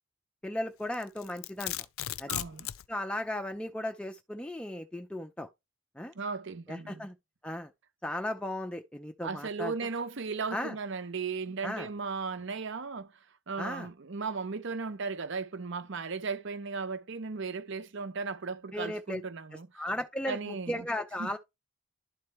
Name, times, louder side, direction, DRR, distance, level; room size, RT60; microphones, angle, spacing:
voice 1, 0.4-1.7 2.2-2.4 2.9-5.5 6.0-6.1 6.7-7.2 7.4-7.7 8.0-9.7 10.5-10.8 11.6-11.9 13.6-13.9 18.7-19.2 19.7-21.4, left 1 dB, 5° left, 0.4 m, -36 dB
Domestic sounds home sounds, 0.9-2.9, left 13 dB, 70° left, 0.4 m, -36 dB
voice 2, 2.3-2.7 6.1-7.1 9.2-13.1 13.5-19.8 20.3-20.9 21.2-21.3, right 4 dB, 60° right, 0.7 m, -36 dB
11.5 x 4.3 x 3.2 m
head